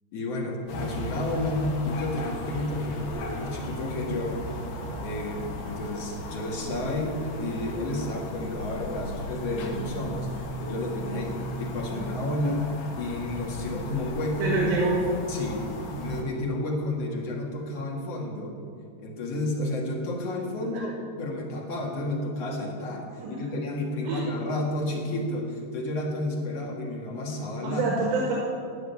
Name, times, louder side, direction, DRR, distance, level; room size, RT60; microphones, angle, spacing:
voice 1, 0.1-4.5 5.0-10.3 10.6-12.7 13.0-14.5 15.3-18.5 19.0-27.9, left 1 dB, 50° left, -2 dB, 2.2 m, -31 dB
sound 1, 0.7-16.2, equal, 70° left, 3.4 m, -36 dB
voice 2, 14.4-15.0 20.7-20.8 23.2-23.4 24.1-24.2 27.6-28.3, right 3 dB, 75° right, -3 dB, 3.9 m, -26 dB
16.0 x 6.5 x 9.5 m, 2.3 s
omnidirectional pair, 5.2 m